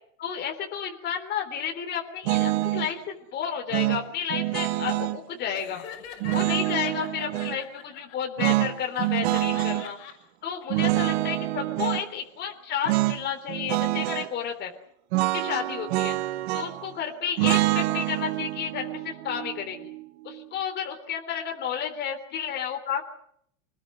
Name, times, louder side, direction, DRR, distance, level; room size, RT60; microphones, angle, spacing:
voice 1, 0.2-5.8 6.3-10.0 10.4-14.7 15.3-16.2 16.5-19.9 20.2-23.0, left 8 dB, 25° left, 4 dB, 3.5 m, -32 dB
sound 1, 2.3-2.9 3.7-5.2 6.2-7.6 8.4-9.9 10.7-12.1 12.9-13.2 13.5-14.3 15.1-16.9 17.4-20.5, right 18 dB, 50° right, 1.1 m, -26 dB
Laughter, 5.5-8.1 9.0-10.1 10.6-11.0, left 9 dB, 50° left, 6.8 m, -43 dB
25.5 x 20.5 x 7.8 m, 0.69 s
supercardioid pair, 165°, 41 cm